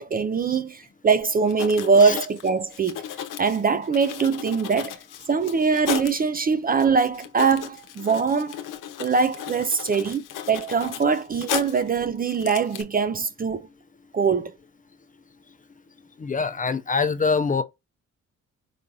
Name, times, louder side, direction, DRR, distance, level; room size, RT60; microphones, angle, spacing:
voice 1, 0.0-3.0 3.4-5.0 5.3-8.6 9.0-13.7 14.1-14.5, right 5 dB, 30° right, 0.4 m, -22 dB
Writing, 1.5-6.2 6.8-6.9 7.1-11.9 12.3-12.8, left 10 dB, 85° left, 0.7 m, -35 dB
voice 2, 16.2-17.6, left 5 dB, 25° left, 0.4 m, -24 dB
4.8 x 3.8 x 2.7 m
cardioid pair, 100°, 31 cm